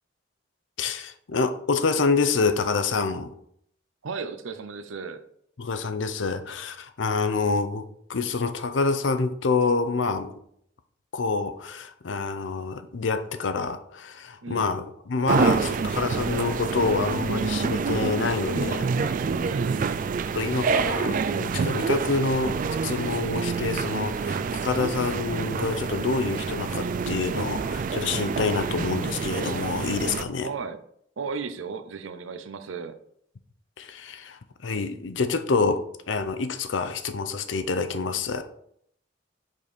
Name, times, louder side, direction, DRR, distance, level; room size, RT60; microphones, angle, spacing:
voice 1, 0.8-3.3 5.6-10.3 11.1-19.2 20.3-22.6 22.8-30.5 33.8-38.4, left 4 dB, 70° left, 10 dB, 0.6 m, -27 dB
voice 2, 4.0-5.2 14.4-14.7 19.4-20.0 30.4-30.8 31.2-33.0, right 5 dB, 85° right, 10 dB, 0.6 m, -35 dB
sound 1, 15.3-30.2, right 5 dB, 45° right, 0.3 m, -27 dB
5.3 x 5.1 x 4.1 m, 0.69 s
head